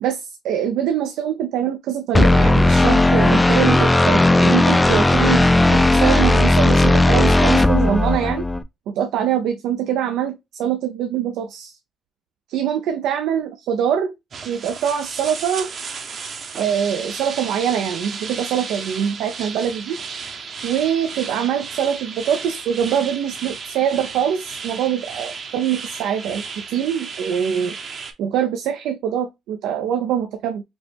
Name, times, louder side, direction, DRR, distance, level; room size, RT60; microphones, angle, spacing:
voice 1, 0.0-8.5 8.9-11.7 12.5-14.1 14.5-15.7 16.6-20.0 20.6-27.8 28.2-30.6, right 9 dB, 90° right, 0.4 m, -23 dB
sound 1, 2.1-8.6, left 2 dB, 15° left, 0.3 m, -15 dB
sound 2, 14.3-28.1, right 5 dB, 50° right, 0.7 m, -34 dB
5.1 x 2.1 x 3.2 m
cardioid pair, 90°, 0 cm